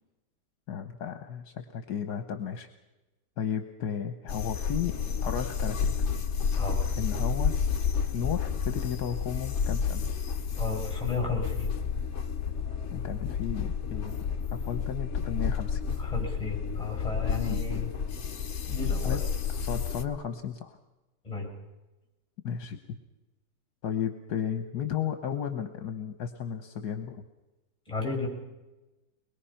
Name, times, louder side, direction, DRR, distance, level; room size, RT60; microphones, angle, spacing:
voice 1, 0.7-2.7 3.4-4.9 5.2-5.9 6.9-7.6 8.1-10.1 12.9-14.2 14.5-16.0 17.5-17.6 19.0-19.2 19.5-20.8 22.4-23.0 23.8-27.2, left 8 dB, 70° left, 7 dB, 1.5 m, -34 dB
sound 1, 4.3-20.0, left 6 dB, 50° left, 1.2 m, -30 dB
voice 2, 6.5-6.9 10.6-11.7 16.0-17.9 18.7-19.2 21.2-21.5 27.9-28.3, left 3 dB, 20° left, 1 dB, 6.8 m, -33 dB
23.0 x 21.5 x 5.7 m, 1.1 s
omnidirectional pair, 1.8 m